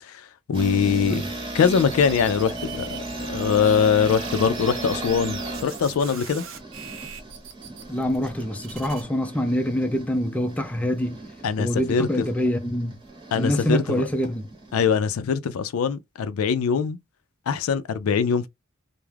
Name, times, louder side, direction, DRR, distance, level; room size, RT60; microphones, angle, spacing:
voice 1, 0.1-1.2 1.5-6.4 11.4-12.1 13.3-14.1 14.7-17.0 17.5-18.5, left 6 dB, 85° left, 0.4 m, -22 dB
sound 1, 0.5-14.9, right 2 dB, 25° right, 0.8 m, -36 dB
sound 2, 1.6-3.8 4.0-9.0, right 7 dB, 65° right, 0.5 m, -41 dB
voice 2, 7.9-11.2 11.6-12.9 13.4-14.5, equal, 5° left, 0.3 m, -25 dB
2.3 x 2.0 x 3.1 m
head